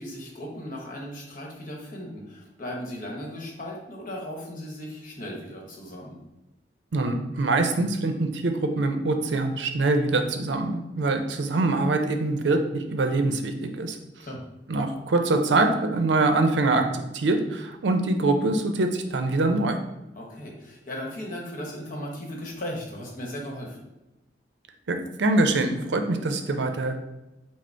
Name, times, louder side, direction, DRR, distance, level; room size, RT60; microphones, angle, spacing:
voice 1, 0.0-6.2 14.2-14.4 20.1-23.8, equal, 50° left, 0 dB, 1.0 m, -37 dB
voice 2, 6.9-14.0 14.7-19.8 24.9-27.0, right 2 dB, 90° right, 6 dB, 0.5 m, -24 dB
4.9 x 2.0 x 4.4 m, 1.0 s
head